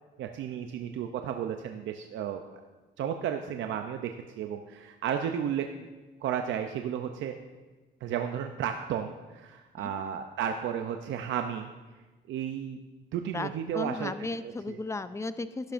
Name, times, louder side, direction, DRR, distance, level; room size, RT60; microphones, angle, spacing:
voice 1, 0.2-2.4 3.0-5.7 6.2-7.3 8.0-11.7 12.3-12.8 13.1-14.1 14.7-14.8, right 9 dB, 75° right, 6 dB, 0.5 m, -33 dB
voice 2, 9.8-10.2 13.3-15.7, left 3 dB, 15° left, 12 dB, 0.5 m, -35 dB
11.5 x 10.5 x 2.5 m, 1.2 s
cardioid pair, 90°, 20 cm